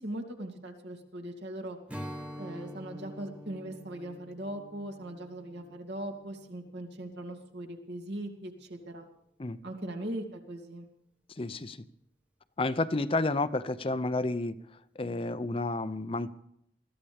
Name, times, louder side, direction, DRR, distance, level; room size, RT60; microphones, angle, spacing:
voice 1, 0.0-1.8 2.4-9.0 9.6-10.9, right 1 dB, 75° right, 2 dB, 2.7 m, -40 dB
Strum, 1.9-7.3, equal, 5° right, 1.1 m, -46 dB
voice 2, 11.4-11.9 12.6-14.6 15.0-16.3, left 2 dB, 30° left, 13 dB, 0.6 m, -30 dB
21.5 x 14.5 x 3.5 m, 0.72 s
head